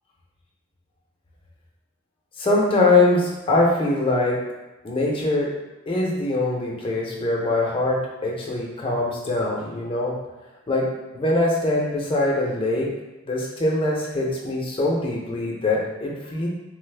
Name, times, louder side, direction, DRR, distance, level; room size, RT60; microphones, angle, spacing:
voice 1, 2.4-4.5 4.8-5.5 5.9-10.1 10.7-12.9 13.3-16.5, left 2 dB, 25° left, -2 dB, 0.5 m, -23 dB
3.1 x 2.0 x 3.2 m, 1.0 s
head